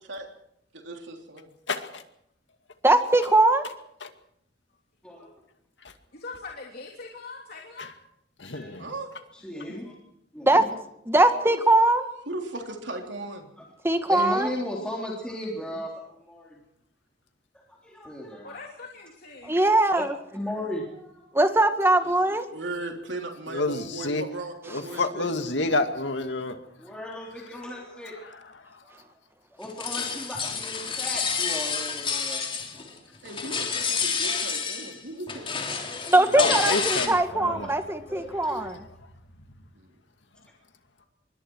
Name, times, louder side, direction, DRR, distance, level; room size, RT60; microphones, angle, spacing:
voice 1, 0.8-1.5 8.8-9.1 12.3-13.5 22.0-22.1 22.5-25.3 33.2-35.5 39.8-39.9, right 2 dB, 75° right, 3 dB, 3.4 m, -37 dB
voice 2, 1.7-2.0 4.0-4.1 8.4-8.9 23.5-24.2 24.7-26.6 36.3-37.8, left 2 dB, 75° left, 7 dB, 2.3 m, -28 dB
voice 3, 2.8-3.6 10.4-10.6 11.1-12.1 13.8-14.5 19.5-20.2 21.3-22.4 36.1-38.7, right 2 dB, 15° right, 7 dB, 1.9 m, -21 dB
voice 4, 6.1-7.9 18.4-19.5 41.0-41.1, left 3 dB, 55° left, 0 dB, 3.2 m, -42 dB
voice 5, 9.3-9.9 10.3-10.7 13.6-13.7 14.1-16.6 17.7-18.6 20.0-20.1 20.3-21.3 26.8-28.2 28.8-29.0 29.5-32.4 36.2-36.7 37.5-37.7 38.1-38.7, left 1 dB, 5° left, -3 dB, 3.6 m, -36 dB
sound 1, 29.6-33.0 33.2-35.0 35.3-37.1, left 5 dB, 30° left, 3.4 m, -29 dB
26.0 x 23.5 x 4.7 m, 0.75 s
head